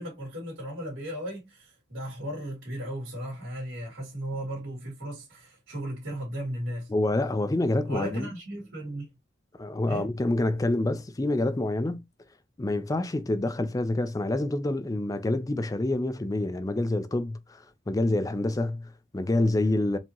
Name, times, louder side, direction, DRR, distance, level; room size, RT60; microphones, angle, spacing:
voice 1, 0.0-6.9 7.9-9.1 9.9-10.1, right 1 dB, 85° right, 2.2 m, -36 dB
voice 2, 6.9-8.3 9.6-12.0 12.6-17.6 17.9-20.0, left 2 dB, 20° left, 0.4 m, -27 dB
4.3 x 2.8 x 2.9 m
head